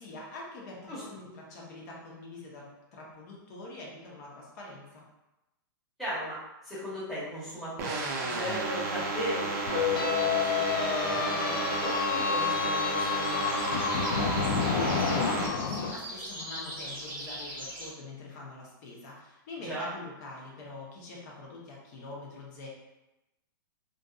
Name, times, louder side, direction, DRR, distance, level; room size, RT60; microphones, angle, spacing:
voice 1, 0.0-5.0 14.5-22.7, left 3 dB, 45° left, -3 dB, 0.8 m, -44 dB
voice 2, 6.0-6.4 6.6-13.6 19.6-19.9, equal, ahead, -11 dB, 1.0 m, -37 dB
sound 1, 7.8-15.5, right 3 dB, 45° right, 0.5 m, -32 dB
sound 2, 9.7-15.9, left 6 dB, 75° left, 0.4 m, -29 dB
sound 3, 9.8-17.9, equal, 20° right, 0.9 m, -43 dB
2.5 x 2.5 x 2.3 m, 0.96 s
hypercardioid pair, 145°, 12 cm